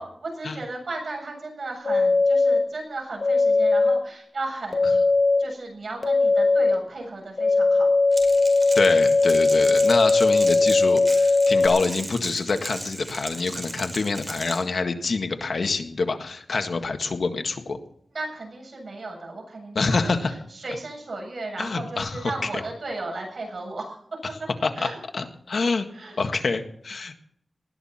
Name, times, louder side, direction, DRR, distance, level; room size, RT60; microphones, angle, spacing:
voice 1, 0.0-5.0 5.4-7.9 18.1-24.2 24.8-25.0 25.9-26.2, right 2 dB, 65° right, 0 dB, 7.5 m, -35 dB
sound 1, 1.8-2.6 3.2-4.0 4.7-5.4 6.0-6.7 7.4-11.7, left 3 dB, 45° left, 2.4 m, -19 dB
Crackle, 8.1-14.6, right 2 dB, 30° right, 4.8 m, -36 dB
voice 2, 8.7-17.8 19.8-20.4 21.6-22.3 24.6-24.9 25.1-25.9 26.2-27.2, left 4 dB, 75° left, 6 dB, 1.7 m, -26 dB
19.5 x 13.5 x 4.4 m, 0.66 s
wide cardioid pair, 115°, 0 cm